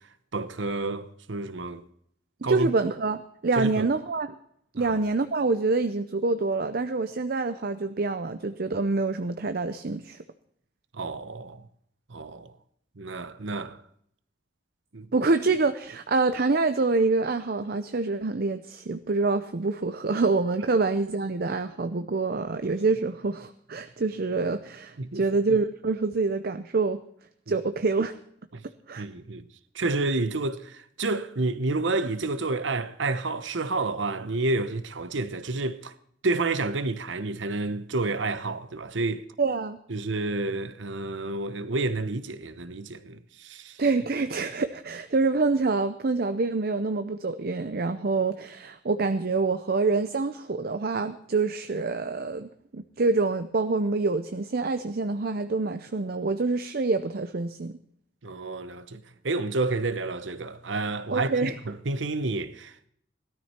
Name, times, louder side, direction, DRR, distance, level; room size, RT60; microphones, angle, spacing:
voice 1, 0.3-1.8 2.4-2.7 3.6-3.9 4.8-4.9 10.9-11.6 12.1-12.5 13.0-13.8 14.9-15.1 25.0-25.2 27.5-27.6 28.5-28.6 29.0-29.4 29.7-35.9 36.2-39.2 39.9-43.8 58.2-62.9, right 3 dB, 75° right, 0.9 m, -30 dB
voice 2, 2.4-4.4 4.7-10.2 15.1-27.0 27.5-28.2 28.9-29.1 39.4-39.8 43.8-57.7 61.1-61.5, right 3 dB, 50° right, 0.6 m, -26 dB
17.5 x 13.0 x 4.4 m
head